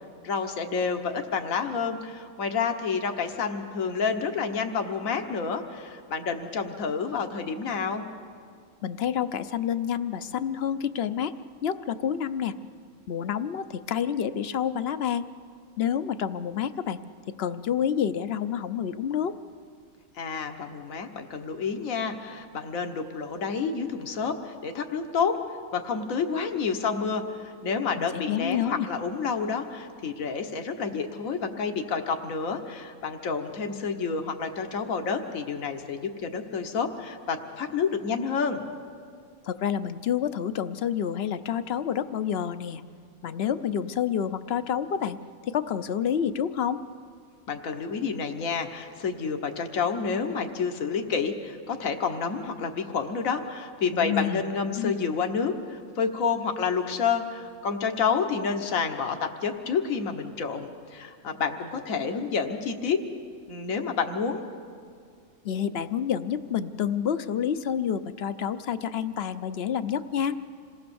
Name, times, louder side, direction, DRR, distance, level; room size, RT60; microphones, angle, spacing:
voice 1, 0.2-8.0 20.2-25.4 25.7-38.6 47.5-63.0 63.5-64.4, left 5 dB, 75° left, 5 dB, 1.6 m, -29 dB
voice 2, 8.8-11.3 11.6-12.5 13.1-15.2 15.8-17.0 17.3-19.3 28.0-28.9 39.4-42.8 43.2-45.2 45.5-46.8 53.9-54.4 54.8-54.9 65.4-70.4, left 8 dB, 55° left, 12 dB, 0.9 m, -28 dB
27.0 x 18.5 x 7.0 m, 2.2 s
omnidirectional pair, 1.4 m